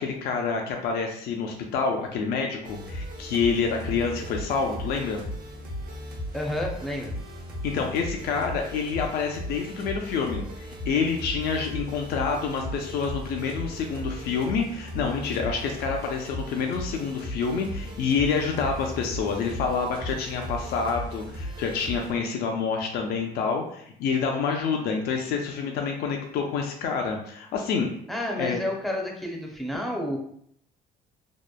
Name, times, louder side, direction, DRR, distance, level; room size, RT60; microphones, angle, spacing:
voice 1, 0.0-5.2 7.6-27.9 28.4-28.6, left 5 dB, 70° left, 2 dB, 0.4 m, -27 dB
sound 1, 2.6-22.1, equal, 70° right, 0.8 m, -37 dB
voice 2, 6.3-7.1 28.1-30.2, left 1 dB, ahead, 0 dB, 0.5 m, -30 dB
2.8 x 2.1 x 2.3 m, 0.67 s
cardioid pair, 110°, 17 cm